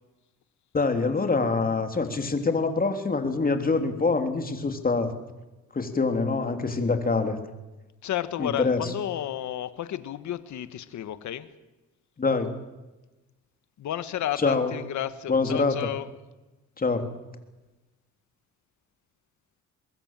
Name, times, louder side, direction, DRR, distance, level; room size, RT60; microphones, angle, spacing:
voice 1, 0.7-5.1 5.7-7.4 8.4-8.9 12.2-12.5 14.4-14.7 15.3-15.9 16.8-17.1, left 4 dB, 30° left, 6 dB, 3.3 m, -25 dB
voice 2, 8.0-11.5 13.8-16.1, left 11 dB, 70° left, 13 dB, 1.5 m, -32 dB
23.5 x 21.5 x 7.6 m, 1.1 s
cardioid pair, 90°, 30 cm